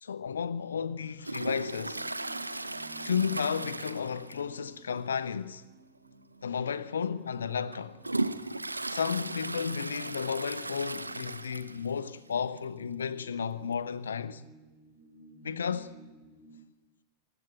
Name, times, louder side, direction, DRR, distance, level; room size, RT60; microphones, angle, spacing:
voice 1, 0.0-2.0 3.0-5.6 6.4-8.0 8.9-14.4 15.4-15.9, left 7 dB, 70° left, 1.1 m, -33 dB
sound 1, 0.6-16.5, right 3 dB, 45° right, 7.1 m, -55 dB
Toilet flush, 1.2-4.7 4.9-5.0 5.5-5.6 6.4-6.5 7.1-12.0 12.3-12.4 12.6-12.7 13.7-13.8, right 2 dB, 85° right, 0.9 m, -36 dB
23.5 x 20.0 x 8.9 m
figure-of-eight pair, 90°, 0 cm